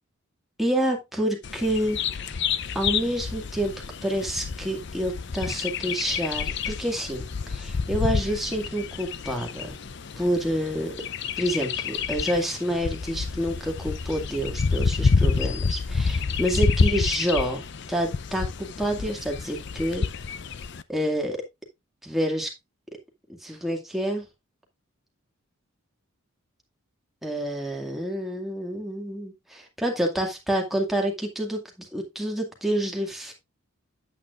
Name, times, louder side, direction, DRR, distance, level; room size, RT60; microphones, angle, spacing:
voice 1, 0.6-2.4 2.7-3.7 4.0-9.7 10.2-11.0 11.4-17.6 17.9-20.1 20.9-21.4 22.0-22.5 23.3-24.3 27.2-33.3, equal, ahead, 0 dB, 2.1 m, -28 dB
Bird vocalization bird call bird song, 1.4-20.8, left 5 dB, 55° left, 0.6 m, -28 dB
9.3 x 8.6 x 2.5 m, 0.21 s
head